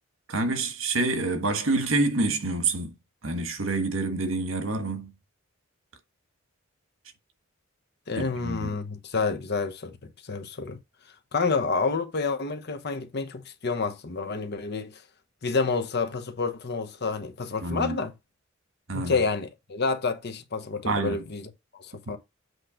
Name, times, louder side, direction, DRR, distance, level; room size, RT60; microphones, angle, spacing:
voice 1, 0.3-3.0 3.2-5.1 8.1-8.7 17.6-18.0 18.9-19.2 20.8-21.2, right 2 dB, 85° right, 1.4 m, -27 dB
voice 2, 8.1-10.8 11.3-15.0 15.4-18.1 18.9-22.2, left 4 dB, 55° left, 0.9 m, -29 dB
8.0 x 3.1 x 5.0 m
head